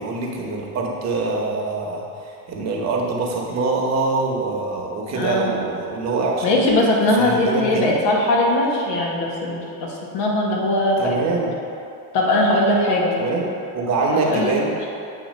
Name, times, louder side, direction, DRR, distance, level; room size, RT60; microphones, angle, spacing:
voice 1, 0.0-6.6 7.2-8.0 11.0-11.5 13.2-14.9, right 3 dB, 40° right, -1 dB, 1.0 m, -24 dB
voice 2, 5.1-5.5 6.4-11.2 12.1-13.2 14.2-14.5, left 1 dB, 70° left, -2 dB, 1.4 m, -20 dB
8.1 x 2.8 x 5.3 m, 2.7 s
cardioid pair, 130°, 41 cm